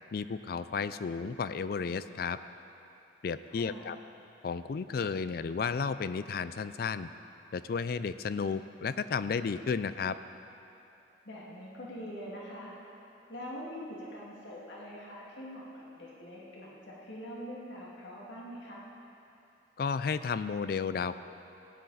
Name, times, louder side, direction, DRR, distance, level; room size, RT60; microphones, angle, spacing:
voice 1, 0.1-2.4 3.2-4.0 4.4-7.1 7.5-10.1 19.8-21.2, left 5 dB, 50° left, 13 dB, 0.3 m, -33 dB
voice 2, 3.4-4.0 11.2-12.7 13.3-18.9, equal, 70° left, -5 dB, 2.2 m, -44 dB
16.0 x 10.0 x 4.0 m, 2.8 s
head